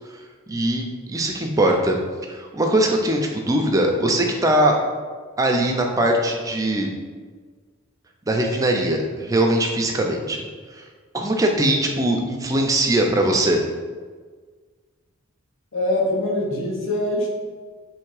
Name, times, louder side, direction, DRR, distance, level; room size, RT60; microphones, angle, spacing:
voice 1, 0.5-1.9 2.3-4.8 5.4-6.9 8.3-10.4 10.7-10.8 11.1-13.6, right 1 dB, 15° right, 2 dB, 0.4 m, -21 dB
voice 2, 15.7-17.3, left 1 dB, 60° left, -1 dB, 0.9 m, -23 dB
3.4 x 3.1 x 4.7 m, 1.5 s
head